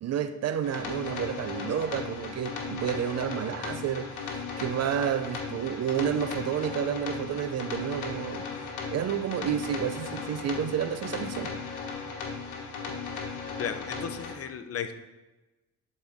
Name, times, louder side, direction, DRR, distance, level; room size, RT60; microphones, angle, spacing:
voice 1, 0.0-8.5 8.9-11.5, right 9 dB, 55° right, 0.6 m, -30 dB
sound 1, 0.6-14.3, left 5 dB, 85° left, 1.4 m, -36 dB
voice 2, 13.6-14.9, left 7 dB, 50° left, 0.7 m, -34 dB
11.5 x 4.3 x 3.6 m
cardioid pair, 90°, 30 cm